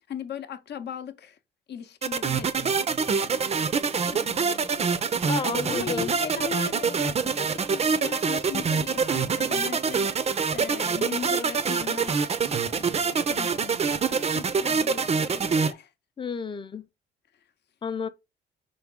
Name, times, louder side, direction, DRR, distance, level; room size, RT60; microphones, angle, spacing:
voice 1, 0.1-1.4 1.7-5.0 5.7-12.3 12.6-15.9, left 8 dB, 60° left, 0.7 m, -39 dB
sound 1, 2.0-15.7, right 5 dB, 30° right, 0.5 m, -25 dB
voice 2, 5.2-6.1 16.2-16.8 17.8-18.1, left 6 dB, 25° left, 0.5 m, -31 dB
3.9 x 3.5 x 3.6 m
cardioid pair, 90°, 20 cm